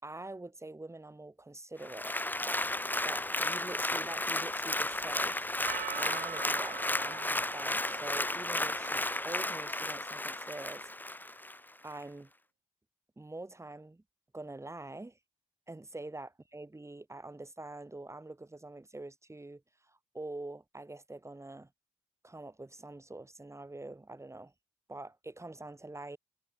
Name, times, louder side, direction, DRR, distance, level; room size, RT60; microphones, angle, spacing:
voice 1, 0.0-2.2 3.0-5.4 6.0-11.2 11.8-12.3 13.2-14.0 14.3-15.2 15.7-21.7 22.2-24.5 24.9-26.2, right 2 dB, 20° right, 4.2 m, -45 dB
Applause, 1.8-11.6 12.0-12.1, left 1 dB, 15° left, 1.7 m, -33 dB
Percussion, 5.6-10.1, right 13 dB, 80° right, 0.7 m, -45 dB
supercardioid pair, 45°, 14 cm